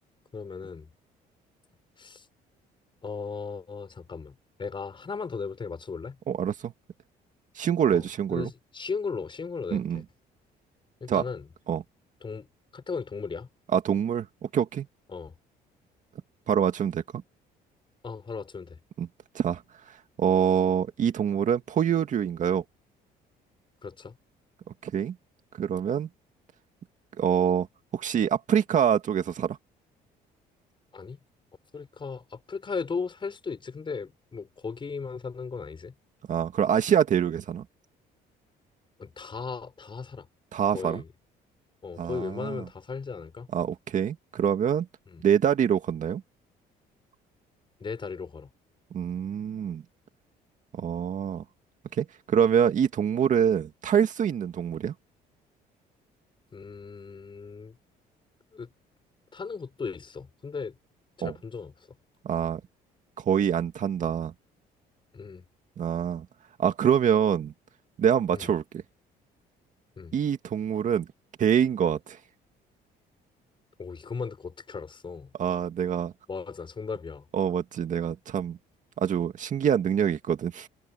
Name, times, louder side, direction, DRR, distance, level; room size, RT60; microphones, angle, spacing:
voice 1, 0.3-0.9 2.0-2.3 3.0-6.2 7.9-10.0 11.0-11.5 12.2-12.5 12.7-13.5 15.1-15.3 18.0-18.8 23.8-24.2 30.9-31.2 31.7-35.9 39.0-40.3 40.7-41.1 41.8-43.5 45.1-45.2 47.8-48.5 56.5-57.7 58.5-58.7 59.3-60.8 61.2-61.7 65.1-65.4 68.3-68.5 70.0-70.1 73.8-75.3 76.3-77.2, left 5 dB, 30° left, 6.4 m, -36 dB
voice 2, 6.3-6.7 7.6-8.5 9.7-10.0 11.1-11.2 11.7-11.8 13.7-14.9 16.5-17.0 19.0-19.1 19.3-19.6 19.9-22.6 24.8-25.2 25.6-26.1 27.2-27.7 27.9-29.6 36.3-37.6 40.5-41.0 42.0-42.6 43.5-44.9 45.2-46.2 48.9-49.8 50.7-51.4 51.9-54.9 61.2-61.3 62.2-62.6 63.2-64.3 65.8-66.3 66.6-67.5 68.0-68.8 70.1-71.1 71.4-72.2 75.4-76.1 77.3-78.6 79.0-80.7, right 8 dB, 50° right, 2.1 m, -25 dB
cardioid pair, 110°, 17 cm